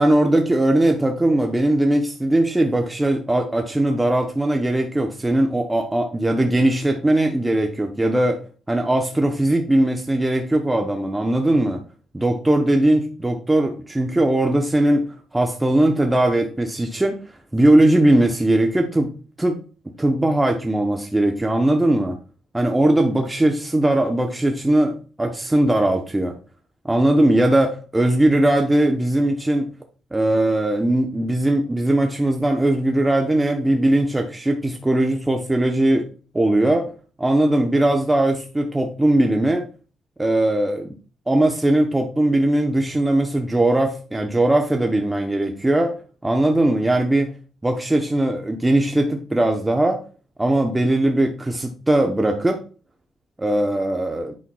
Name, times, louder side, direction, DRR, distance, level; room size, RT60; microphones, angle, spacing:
voice 1, 0.0-8.4 8.7-11.8 12.1-15.1 15.3-17.2 17.5-19.1 19.4-19.6 20.0-22.2 22.5-26.3 26.8-29.7 30.1-36.1 36.3-36.9 37.2-39.7 40.2-40.9 41.3-47.3 47.6-50.0 50.4-52.6 53.4-54.3, right 1 dB, 10° right, 3 dB, 0.8 m, -19 dB
8.5 x 5.6 x 2.3 m, 0.37 s
cardioid pair, 90°, 0 cm